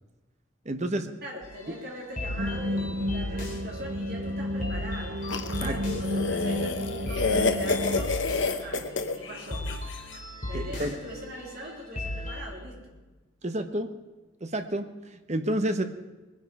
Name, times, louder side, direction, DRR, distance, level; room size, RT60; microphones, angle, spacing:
voice 1, 0.6-1.1 5.6-5.8 10.5-10.9 13.4-13.9 14.4-14.9 15.3-15.8, right 1 dB, 35° right, 8 dB, 1.0 m, -29 dB
voice 2, 1.2-9.7 10.4-13.0, equal, 50° right, -3 dB, 3.9 m, -41 dB
sound 1, 1.4-12.4, left 1 dB, 40° left, 3.0 m, -37 dB
sound 2, 2.4-8.0, left 1 dB, 65° right, 0.8 m, -32 dB
sound 3, 5.3-10.0, left 3 dB, 65° left, 1.0 m, -29 dB
21.0 x 10.5 x 4.8 m, 1.2 s
head